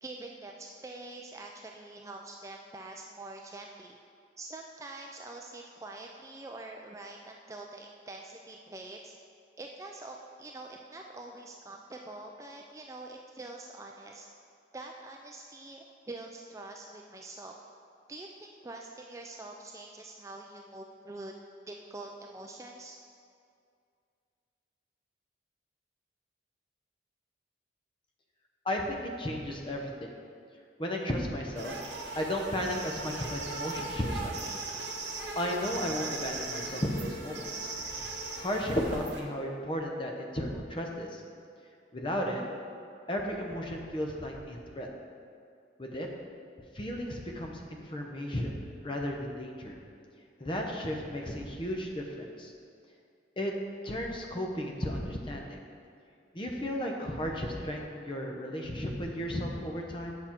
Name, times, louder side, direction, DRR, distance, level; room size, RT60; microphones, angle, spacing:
voice 1, 0.0-4.0 4.4-9.2 9.6-14.3 14.7-17.6 18.1-21.3 21.7-23.0, right 2 dB, 15° right, 1 dB, 0.3 m, -45 dB
voice 2, 28.6-30.2 30.8-31.7 32.1-34.4 35.3-37.7 38.4-41.2 41.9-42.4 43.1-44.9 45.8-46.1 46.7-49.8 50.4-52.5 53.4-53.5 53.8-55.6 56.3-60.2, equal, 25° left, 1 dB, 0.8 m, -34 dB
sound 1, 31.5-39.2, right 3 dB, 65° right, 1.1 m, -38 dB
7.8 x 6.1 x 4.4 m, 2.4 s
head